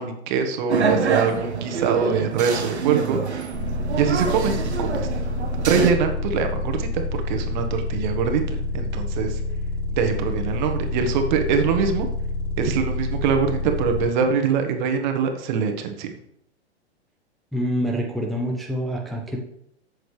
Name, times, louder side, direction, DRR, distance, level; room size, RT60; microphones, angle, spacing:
voice 1, 0.0-3.2 3.9-5.1 5.6-9.4 9.9-12.1 12.6-16.2, right 6 dB, 45° right, 5 dB, 1.5 m, -23 dB
sound 1, 0.7-5.9, right 5 dB, 75° right, 1.3 m, -26 dB
sound 2, 3.5-14.0, left 2 dB, 30° left, 3.4 m, -28 dB
voice 2, 17.5-19.4, equal, ahead, -1 dB, 1.0 m, -26 dB
11.5 x 7.9 x 3.3 m, 0.76 s
figure-of-eight pair, 105°, 34 cm